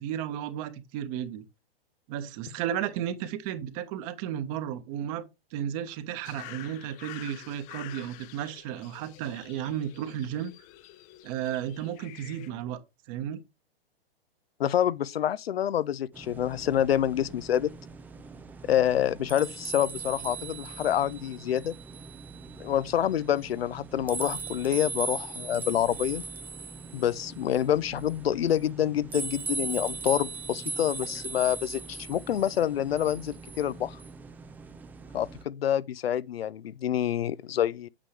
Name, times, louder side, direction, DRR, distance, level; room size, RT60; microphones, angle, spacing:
voice 1, 0.0-1.4 2.1-5.3 5.5-10.5 11.2-12.8 13.1-13.4, right 10 dB, 35° right, 1.2 m, -33 dB
sound 1, 6.2-12.5, left 14 dB, 25° left, 0.7 m, -48 dB
voice 2, 14.6-17.7 18.7-21.7 22.6-26.2 26.9-34.0 35.1-37.9, left 10 dB, 80° left, 0.6 m, -27 dB
sound 2, 16.1-35.4, right 4 dB, 5° right, 0.4 m, -39 dB
8.7 x 7.5 x 3.3 m
hypercardioid pair, 135°, 30 cm